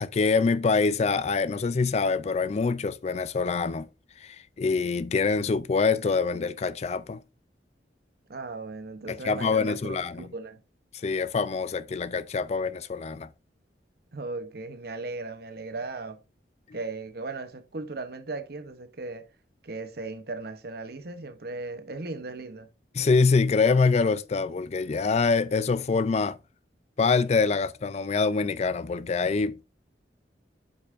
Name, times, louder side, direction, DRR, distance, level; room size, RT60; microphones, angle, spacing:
voice 1, 0.0-3.9 4.2-7.2 9.1-10.3 11.0-13.3 22.9-26.4 27.0-29.6, left 4 dB, 40° left, 0.4 m, -25 dB
voice 2, 8.3-10.6 14.1-16.2 16.7-19.3 19.6-22.7, right 3 dB, 60° right, 0.9 m, -37 dB
8.3 x 5.4 x 2.6 m
head